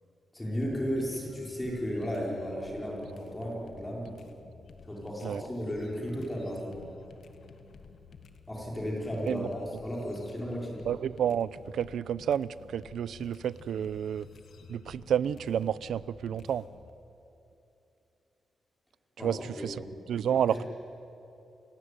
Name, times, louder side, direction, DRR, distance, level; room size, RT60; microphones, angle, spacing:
voice 1, 0.3-4.3 4.9-6.9 8.5-10.8 19.2-19.3 19.6-19.8 20.5-20.7, equal, 10° left, -3 dB, 4.5 m, -34 dB
sound 1, 0.6-16.9, left 5 dB, 60° left, 1.7 m, -53 dB
voice 2, 10.9-14.3 14.7-16.6 19.2-19.8 20.1-20.6, right 9 dB, 85° right, 18 dB, 0.6 m, -30 dB
29.0 x 16.5 x 9.8 m, 2.8 s
wide cardioid pair, 165°, 0 cm